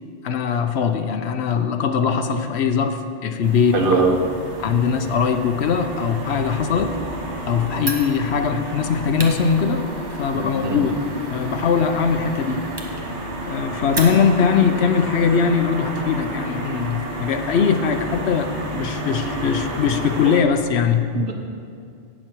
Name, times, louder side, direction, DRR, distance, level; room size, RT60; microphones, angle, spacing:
voice 1, 0.2-3.9 4.6-6.9 7.5-9.9 10.2-11.0 11.3-12.6 13.4-21.1, left 6 dB, 75° left, 7 dB, 1.0 m, -21 dB
sound 1, 3.4-20.4, right 1 dB, 75° right, 1.6 m, -31 dB
voice 2, 3.7-4.2 10.3-10.8 21.1-21.3, right 3 dB, 55° right, 1 dB, 1.4 m, -21 dB
Fire, 7.8-14.6, right 2 dB, 25° right, 1.0 m, -36 dB
16.5 x 6.3 x 4.5 m, 2.3 s
omnidirectional pair, 1.2 m